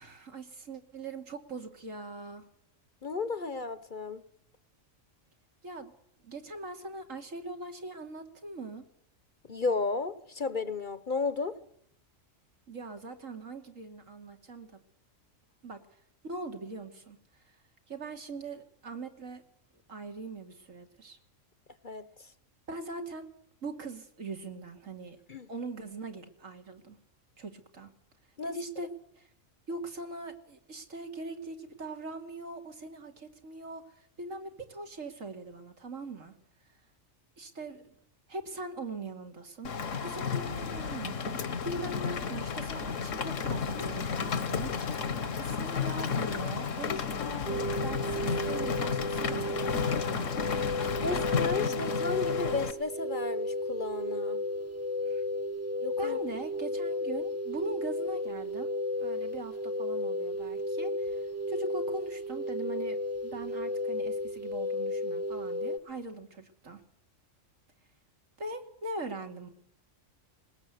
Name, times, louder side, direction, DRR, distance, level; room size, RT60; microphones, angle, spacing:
voice 1, 0.0-2.5 5.6-5.9 6.2-8.8 12.7-14.7 15.6-17.6 17.9-19.4 19.9-21.2 22.7-23.3 23.6-25.2 25.5-27.0 27.4-27.9 28.4-29.3 29.7-36.4 36.6-36.8 37.4-38.0 38.3-41.4 41.6-50.4 50.7-51.2 51.5-52.0 55.0-55.2 56.0-58.7 59.0-66.8 68.4-69.5, right 2 dB, 75° right, 2.8 m, -41 dB
voice 2, 3.0-4.2 9.5-11.6 21.8-22.1 25.3-25.5 28.4-28.6 47.2-47.7 51.0-54.4 55.8-56.2, left 4 dB, 40° left, 1.1 m, -33 dB
Rain, 39.6-52.7, left 6 dB, 70° left, 1.6 m, -32 dB
sound 1, 47.5-65.8, left 1 dB, 10° right, 1.1 m, -33 dB
20.5 x 20.0 x 8.1 m
omnidirectional pair, 1.4 m